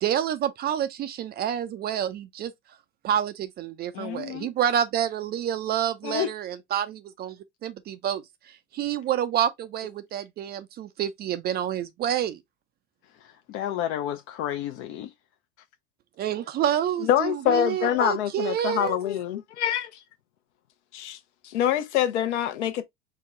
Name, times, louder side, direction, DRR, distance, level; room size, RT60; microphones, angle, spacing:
voice 1, 0.0-2.5 3.0-7.4 7.6-8.2 8.7-12.4 16.2-19.0, right 10 dB, 25° right, 0.5 m, -28 dB
voice 2, 3.9-4.5 6.0-6.3 13.1-15.1, left 11 dB, 35° left, 0.5 m, -32 dB
voice 3, 17.0-19.9 20.9-21.2 21.4-22.8, left 11 dB, 65° left, 0.9 m, -25 dB
4.7 x 2.2 x 3.7 m
hypercardioid pair, 90°, 38 cm